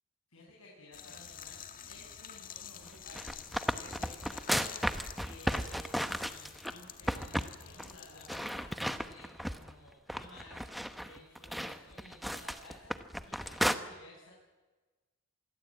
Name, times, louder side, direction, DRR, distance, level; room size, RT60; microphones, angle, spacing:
voice 1, 0.3-1.6 1.8-14.3, left 2 dB, 75° left, -3 dB, 7.5 m, -55 dB
sound 1, 0.9-8.5, left 8 dB, 40° left, 1.8 m, -48 dB
sound 2, 2.9-6.7 7.1-7.5 7.8-7.9 8.3-9.7 10.1-13.7, equal, ahead, 1.0 m, -34 dB
27.0 x 21.0 x 8.8 m, 1.3 s
head